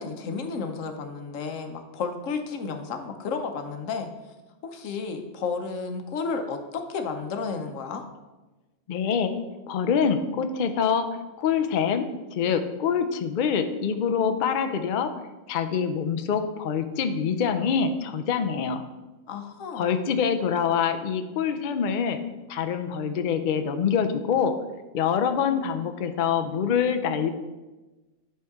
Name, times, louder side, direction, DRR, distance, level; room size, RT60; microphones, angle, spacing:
voice 1, 0.0-4.1 4.6-8.0 19.3-19.9, left 5 dB, 85° left, 6 dB, 1.1 m, -32 dB
voice 2, 8.9-9.3 9.7-15.1 15.5-18.8 19.8-22.2 22.5-24.5 24.9-27.3, left 7 dB, 55° left, 8 dB, 0.6 m, -25 dB
10.5 x 4.4 x 3.6 m, 1.2 s
omnidirectional pair, 1.3 m